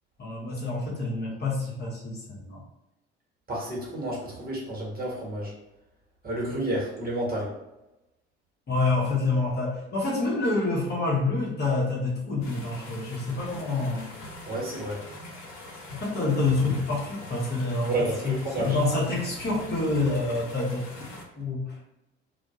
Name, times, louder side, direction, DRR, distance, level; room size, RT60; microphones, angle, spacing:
voice 1, 0.2-2.6 8.7-14.1 15.9-17.9 18.2-18.3 18.6-20.9 21.4-21.8, left 3 dB, 30° left, -5 dB, 0.9 m, -27 dB
voice 2, 3.5-5.5 6.2-7.5 14.5-15.0 17.8-18.8, right 1 dB, 25° right, -4 dB, 1.0 m, -30 dB
sound 1, 12.4-21.2, left 2 dB, 60° left, 1.0 m, -43 dB
2.2 x 2.1 x 2.9 m, 0.95 s
figure-of-eight pair, 55°, 34 cm